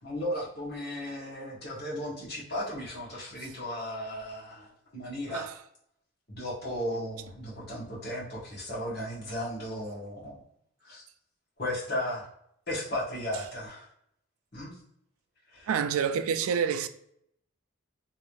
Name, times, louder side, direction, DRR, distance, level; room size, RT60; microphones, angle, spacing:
voice 1, 0.0-5.5 6.3-10.4 10.8-11.0 11.6-12.2 12.7-13.9 14.5-14.7 15.5-15.7, left 1 dB, 50° left, 1.3 m, -35 dB
voice 2, 15.7-16.9, right 7 dB, 80° right, 0.3 m, -28 dB
3.1 x 3.1 x 2.6 m
head